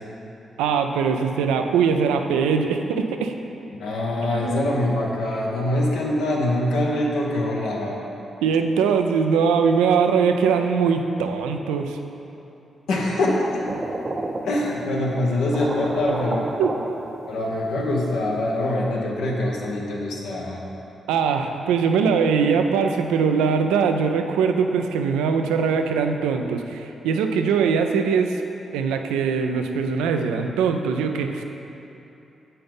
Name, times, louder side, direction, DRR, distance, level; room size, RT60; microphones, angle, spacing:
voice 1, 0.6-3.3 4.3-4.7 8.4-12.0 16.6-16.7 21.1-28.4 28.7-31.4, right 6 dB, 85° right, 5 dB, 0.4 m, -21 dB
voice 2, 3.7-8.0 12.9-13.6 14.4-16.5 17.3-20.6, left 1 dB, 80° left, -3 dB, 1.0 m, -24 dB
sound 1, 13.6-14.9 15.2-15.3 15.5-17.7, right 2 dB, 35° right, 0.5 m, -31 dB
7.6 x 5.5 x 3.5 m, 2.9 s
supercardioid pair, 45°, 0 cm